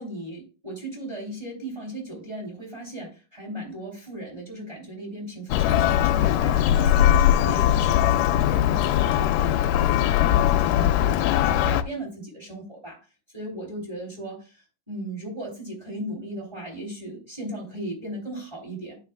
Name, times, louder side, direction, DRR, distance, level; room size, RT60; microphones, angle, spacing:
voice 1, 0.0-13.0 13.3-19.0, right 1 dB, 10° right, -2 dB, 3.0 m, -37 dB
Church bell, 5.5-11.8, left 11 dB, 80° left, 2.1 m, -20 dB
11.5 x 5.7 x 2.3 m, 0.34 s
omnidirectional pair, 4.0 m